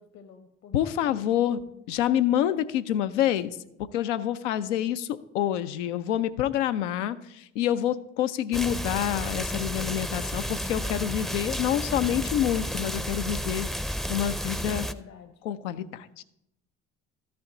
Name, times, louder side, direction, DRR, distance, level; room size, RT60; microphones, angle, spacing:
voice 1, 0.0-1.7 14.6-15.4, left 6 dB, 50° left, 7 dB, 0.9 m, -49 dB
voice 2, 0.7-1.6 1.9-3.6 3.9-13.7 14.1-14.9 15.4-16.2, left 11 dB, 85° left, 12 dB, 0.5 m, -27 dB
sound 1, 8.5-14.9, equal, ahead, 0.5 m, -32 dB
13.5 x 5.7 x 3.8 m, 0.82 s
hypercardioid pair, 50°, 35 cm